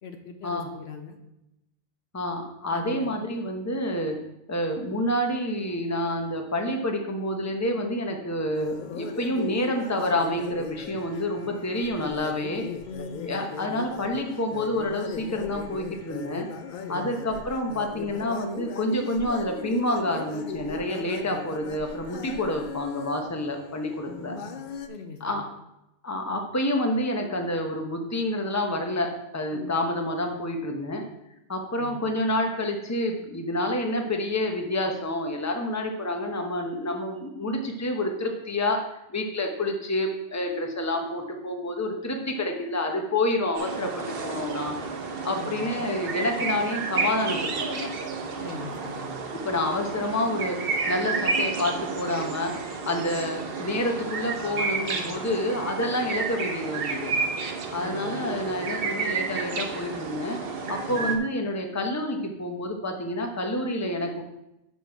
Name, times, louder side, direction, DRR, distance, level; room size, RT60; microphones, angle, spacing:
voice 1, 0.0-1.2 2.7-3.1 12.8-13.4 16.8-17.3 24.0-24.6 24.9-25.4 29.5-29.9 31.8-32.0 45.3-45.6 48.4-49.2 57.7-58.2 60.9-61.1, left 4 dB, 85° left, 4 dB, 1.2 m, -41 dB
voice 2, 2.1-4.2 4.5-12.6 13.2-16.5 16.9-24.4 25.2-25.4 26.0-31.0 31.5-38.8 39.1-44.8 45.2-47.9 49.3-57.1 57.7-60.4 60.7-64.2, left 1 dB, 15° left, 3 dB, 0.9 m, -28 dB
sound 1, 8.5-24.9, left 6 dB, 60° left, 0.7 m, -38 dB
sound 2, 43.6-61.2, right 4 dB, 65° right, 1.1 m, -31 dB
7.1 x 6.0 x 4.7 m, 0.87 s
omnidirectional pair, 1.1 m